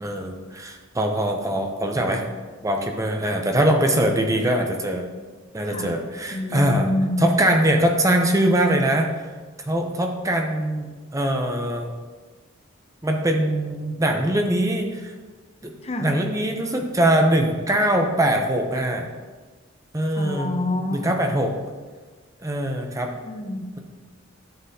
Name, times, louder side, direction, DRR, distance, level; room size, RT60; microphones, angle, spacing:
voice 1, 0.0-2.2 2.6-5.1 5.5-6.9 7.2-9.1 9.7-11.9 13.0-15.1 15.6-15.7 16.0-19.1 19.9-20.5 20.9-21.5 22.4-23.1, right 1 dB, 15° right, 3 dB, 0.7 m, -22 dB
voice 2, 6.3-7.3 15.8-16.1 20.2-21.1 23.1-23.7, left 1 dB, 30° left, 5 dB, 0.6 m, -27 dB
11.5 x 7.3 x 2.8 m, 1.4 s
head